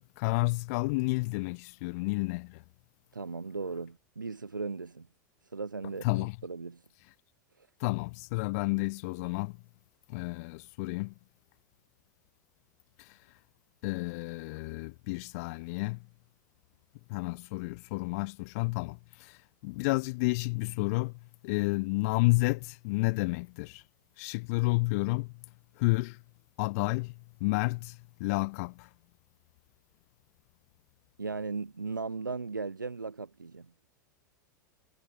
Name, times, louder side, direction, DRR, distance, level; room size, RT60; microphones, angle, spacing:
voice 1, 0.0-2.6 6.0-6.4 7.0-7.1 7.8-9.6 10.1-11.1 13.0-13.4 13.8-16.1 17.1-23.8 24.2-25.3 25.8-26.2 26.6-28.9, left 26 dB, 50° left, 1.4 m, -31 dB
voice 2, 3.1-5.1 5.5-6.8 31.2-33.7, right 4 dB, 80° right, 5.2 m, -37 dB
figure-of-eight pair, 90°, 10 cm